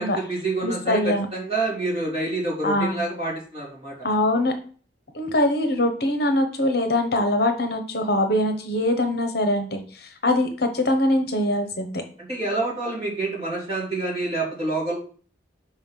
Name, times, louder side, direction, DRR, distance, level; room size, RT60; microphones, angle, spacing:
voice 1, 0.0-3.9 12.2-15.0, right 2 dB, 30° right, -5 dB, 3.4 m, -27 dB
voice 2, 0.6-1.3 2.6-3.0 4.0-4.5 5.1-12.0, left 1 dB, 55° left, 6 dB, 1.1 m, -23 dB
5.6 x 5.2 x 5.7 m, 0.43 s
head